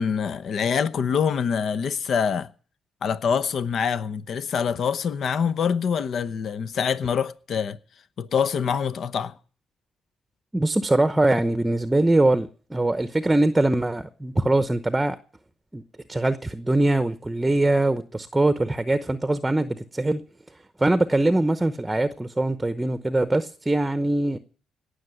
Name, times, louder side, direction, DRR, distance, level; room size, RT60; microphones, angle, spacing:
voice 1, 0.0-2.5 3.0-7.8 8.2-9.3, left 7 dB, 60° left, 0.9 m, -25 dB
voice 2, 10.5-15.2 15.7-15.8 16.1-20.2 20.8-24.4, right 2 dB, 10° right, 0.9 m, -22 dB
17.5 x 6.6 x 9.3 m
cardioid pair, 90°, 0 cm